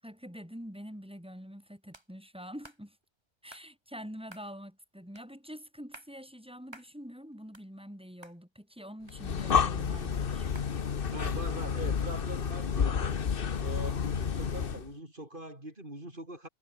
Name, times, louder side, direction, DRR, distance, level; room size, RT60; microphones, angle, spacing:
voice 1, 0.0-3.0 3.4-10.5, equal, 5° right, 6.5 m, -46 dB
sound 1, 1.9-2.1 2.6-2.8 3.5-3.7 4.3-4.5 5.2-5.3 5.8-6.1 6.7-6.9 7.3-8.0 8.2-8.4 9.1-9.6 10.5-10.7, right 1 dB, 20° right, 3.4 m, -52 dB
Breathing, 9.1-14.9, left 6 dB, 50° left, 1.2 m, -30 dB
voice 2, 11.1-13.2 13.6-16.5, right 1 dB, 45° right, 6.4 m, -42 dB
omnidirectional pair, 1.2 m